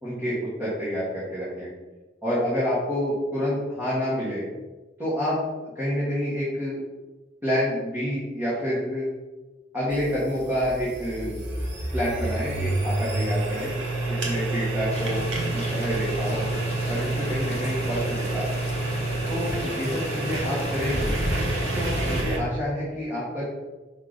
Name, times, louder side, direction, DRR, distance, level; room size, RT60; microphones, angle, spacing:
voice 1, 0.0-1.7 2.2-4.4 5.0-5.4 5.7-6.8 7.4-9.1 9.7-11.3 11.9-13.7 14.1-16.5 16.9-18.5 19.3-21.2 21.7-23.4, equal, 15° right, -9 dB, 1.7 m, -28 dB
sound 1, 9.9-22.4, right 2 dB, 75° right, 1.4 m, -28 dB
sound 2, 14.9-22.2, left 1 dB, 35° left, 1.1 m, -36 dB
5.3 x 4.0 x 5.2 m, 1.2 s
head